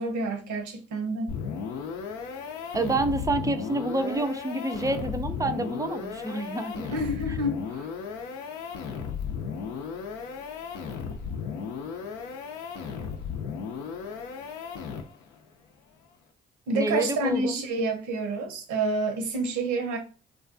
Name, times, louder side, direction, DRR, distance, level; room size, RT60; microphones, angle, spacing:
voice 1, 0.0-1.4 6.9-7.9 16.7-20.0, right 2 dB, 75° right, 0.7 m, -28 dB
sound 1, 1.3-15.3, left 6 dB, 80° left, 0.5 m, -35 dB
voice 2, 2.7-6.9 7.3-7.4 16.7-17.6, right 2 dB, 10° right, 0.3 m, -28 dB
2.3 x 2.2 x 2.5 m
hypercardioid pair, 50°, 30 cm